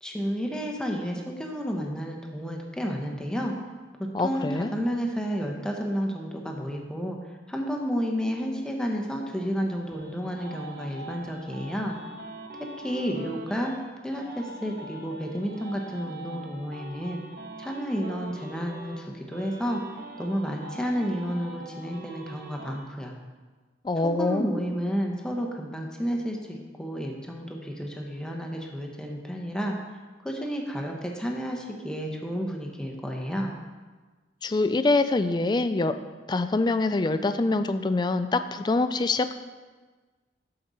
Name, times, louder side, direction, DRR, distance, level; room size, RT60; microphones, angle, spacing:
voice 1, 0.0-3.5 4.2-7.2 7.5-12.0 12.8-13.7 14.0-17.2 17.6-19.8 20.2-23.1 24.0-29.8 30.2-33.5, equal, 5° left, 0 dB, 0.9 m, -31 dB
voice 2, 4.1-4.7 23.8-24.6 34.4-35.9 36.3-39.3, left 3 dB, 25° left, 10 dB, 0.3 m, -25 dB
sound 1, 9.4-13.8 14.1-19.0 19.3-22.8, right 1 dB, 55° right, 1.2 m, -43 dB
12.5 x 5.3 x 4.0 m, 1.4 s
head